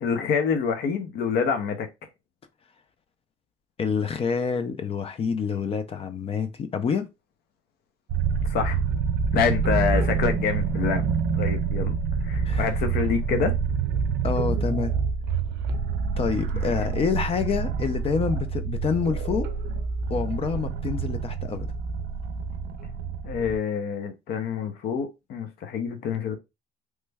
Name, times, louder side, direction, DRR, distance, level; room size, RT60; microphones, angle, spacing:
voice 1, 0.0-1.9 8.5-8.8 9.3-11.0 11.4-11.9 12.2-13.5 16.5-16.6 23.2-26.4, left 6 dB, 65° left, 0.7 m, -26 dB
voice 2, 3.8-7.1 12.5-12.7 14.2-14.9 16.2-19.5 20.1-21.7, left 6 dB, 35° left, 0.4 m, -27 dB
sound 1, 8.1-23.6, right 5 dB, 80° right, 0.5 m, -27 dB
3.1 x 2.2 x 3.4 m
cardioid pair, 110°, 17 cm